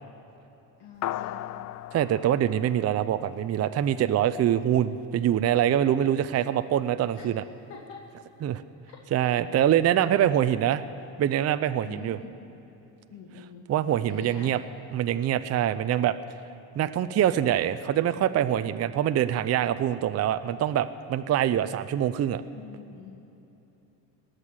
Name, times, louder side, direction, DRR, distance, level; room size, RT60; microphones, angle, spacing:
voice 1, 0.8-1.5 7.1-7.3 7.7-8.0 8.9-9.0 11.8-12.4 13.1-13.7 14.1-14.5 22.5-23.2, left 5 dB, 65° left, 0 dB, 1.8 m, -44 dB
sound 1, 1.0-3.7, left 13 dB, 45° left, 0.4 m, -37 dB
voice 2, 1.9-7.4 8.4-8.6 9.1-10.8 11.2-12.2 13.7-14.6 14.9-16.2 16.8-22.4, right 10 dB, 35° right, 11 dB, 0.5 m, -24 dB
18.5 x 6.7 x 9.7 m, 3.0 s
supercardioid pair, 95°, 44 cm